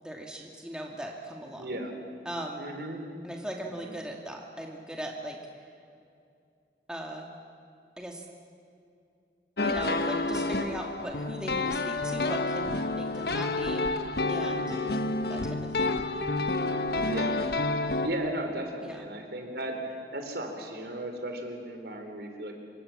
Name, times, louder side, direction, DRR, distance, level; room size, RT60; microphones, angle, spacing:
voice 1, 0.0-1.7 2.3-2.6 3.2-5.4 6.9-7.3 8.0-8.2 9.6-13.8 14.3-14.7 15.3-16.0 18.8-19.0, right 1 dB, 5° right, 0 dB, 2.3 m, -39 dB
voice 2, 1.6-1.9 2.6-3.0 3.7-4.0 14.5-14.8 17.1-17.4 18.0-22.5, right 1 dB, 65° right, 4 dB, 4.0 m, -36 dB
sound 1, 9.6-18.1, left 2 dB, 65° left, 1.3 m, -29 dB
26.5 x 25.5 x 7.4 m, 2.5 s
head